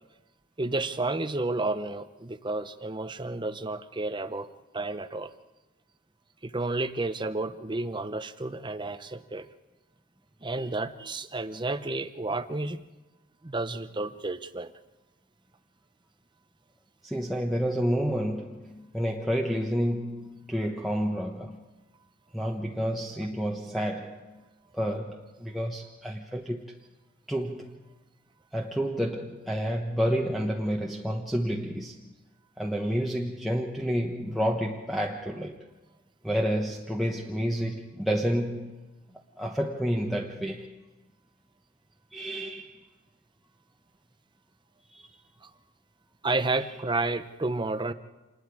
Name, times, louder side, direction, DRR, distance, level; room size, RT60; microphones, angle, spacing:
voice 1, 0.6-4.5 4.7-5.3 6.4-9.5 10.4-12.8 13.4-14.7 45.4-45.5 46.2-47.9, right 2 dB, 20° right, 0.8 m, -31 dB
voice 2, 17.0-21.6 22.3-24.4 24.7-26.7 27.3-27.8 28.5-32.1 32.6-35.6 36.2-38.8 39.4-40.8 42.1-42.8 44.9-45.1, equal, ahead, 1.1 m, -30 dB
27.5 x 20.5 x 4.8 m
head